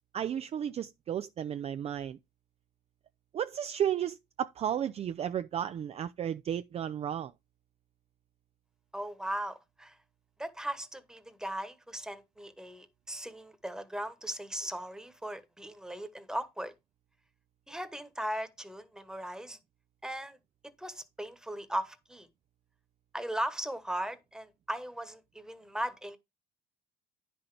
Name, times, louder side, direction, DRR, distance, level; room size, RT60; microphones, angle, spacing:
voice 1, 0.1-2.2 3.3-7.3, right 9 dB, 40° right, 0.4 m, -33 dB
voice 2, 8.9-10.0 10.4-16.7 17.7-19.6 20.0-20.4 20.8-22.3 23.1-26.2, right 1 dB, 5° right, 1.2 m, -38 dB
9.8 x 6.0 x 3.3 m
cardioid pair, 110°, 17 cm